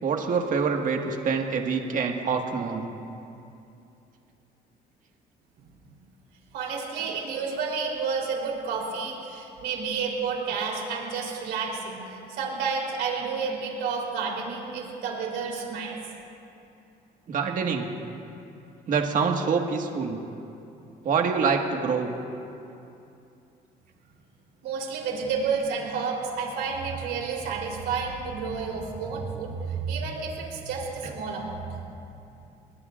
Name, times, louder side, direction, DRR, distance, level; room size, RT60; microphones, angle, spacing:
voice 1, 0.0-2.9 7.3-7.4 17.3-17.9 18.9-20.2 21.0-22.1 31.0-31.1, right 5 dB, 50° right, 2 dB, 1.8 m, -26 dB
voice 2, 6.5-12.0 12.3-16.0 24.6-31.7, right 5 dB, 80° right, -1 dB, 3.7 m, -30 dB
27.5 x 20.5 x 2.5 m, 2.7 s
cardioid pair, 110°, 17 cm